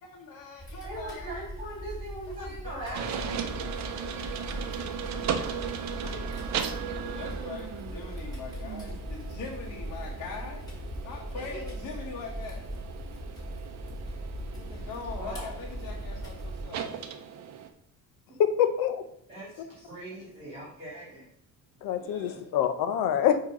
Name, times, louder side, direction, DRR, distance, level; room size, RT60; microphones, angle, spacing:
voice 1, 0.0-1.3 2.4-3.0 6.0-6.3 7.0-10.7 11.0-12.7 14.5-16.9 21.9-22.5, left 4 dB, 55° left, -2 dB, 1.2 m, -42 dB
sound 1, 0.6-16.6, equal, 10° left, 2.2 m, -39 dB
voice 2, 0.8-3.1 11.5-11.6 15.2-15.5 19.3-21.3 22.2-22.4, right 1 dB, 20° right, -7 dB, 2.4 m, -40 dB
sound 2, 2.9-17.7, right 7 dB, 55° right, 0.6 m, -37 dB
voice 3, 18.4-19.0 21.8-23.4, left 9 dB, 90° left, 9 dB, 0.7 m, -25 dB
7.4 x 3.0 x 5.2 m, 0.71 s
cardioid pair, 145°, 34 cm